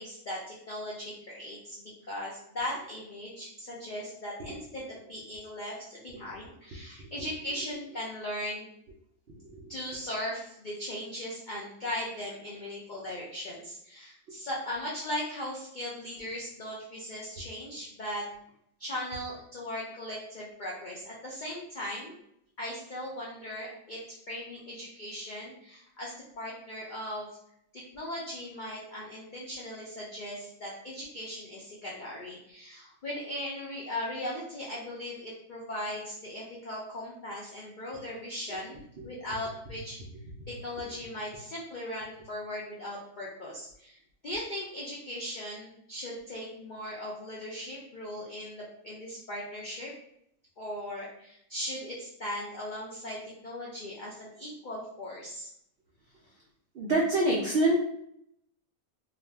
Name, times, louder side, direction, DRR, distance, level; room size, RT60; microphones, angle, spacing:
voice 1, 0.0-8.7 9.7-18.3 18.8-22.1 22.6-27.3 27.7-40.0 40.5-44.0 44.2-49.9 50.6-55.5, left 1 dB, 75° left, -5 dB, 0.4 m, -38 dB
voice 2, 9.3-9.7 38.5-38.6 39.0-39.1 56.7-57.8, right 1 dB, 80° right, -2 dB, 0.5 m, -27 dB
2.4 x 2.1 x 3.3 m, 0.74 s
omnidirectional pair, 1.5 m